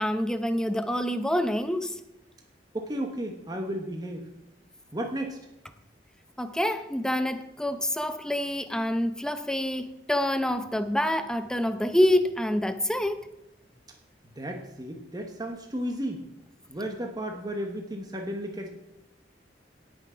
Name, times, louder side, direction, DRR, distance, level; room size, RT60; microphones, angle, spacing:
voice 1, 0.0-2.0 6.4-13.2, left 1 dB, 5° left, 0.7 m, -27 dB
voice 2, 2.7-4.2 4.9-5.4 14.4-16.2 16.7-18.7, equal, 20° right, 1.2 m, -33 dB
17.5 x 6.3 x 5.7 m
head